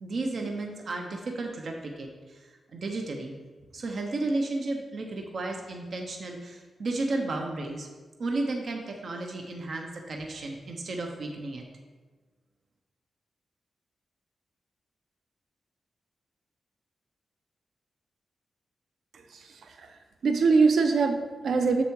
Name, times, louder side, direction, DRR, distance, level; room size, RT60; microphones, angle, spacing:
voice 1, 0.0-3.4 3.7-7.9 8.2-11.6, right 2 dB, 55° right, 2 dB, 1.0 m, -33 dB
voice 2, 19.1-19.9 20.2-21.8, right 4 dB, 75° right, 6 dB, 0.6 m, -23 dB
7.0 x 6.6 x 4.8 m, 1.3 s
wide cardioid pair, 150°, 0 cm